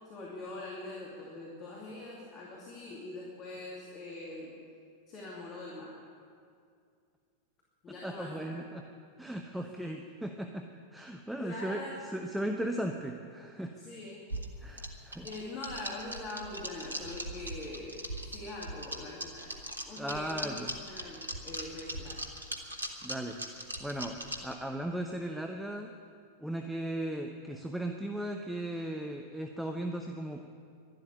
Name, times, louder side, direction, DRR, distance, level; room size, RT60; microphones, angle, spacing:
voice 1, 0.1-4.5 5.1-6.0 7.8-8.6 9.7-9.9 11.4-11.9 13.8-14.2 15.2-19.5 19.8-22.2, left 2 dB, 30° left, -4 dB, 2.6 m, -43 dB
voice 2, 8.0-8.8 9.2-10.7 10.9-11.8 12.1-13.7 14.6-15.3 19.9-20.7 23.0-23.4 23.8-25.9 26.4-30.4, right 1 dB, 5° right, 4 dB, 0.8 m, -37 dB
sound 1, 14.3-24.5, right 1 dB, 80° right, 1.3 m, -40 dB
12.0 x 12.0 x 9.9 m, 2.3 s
figure-of-eight pair, 90°, 0 cm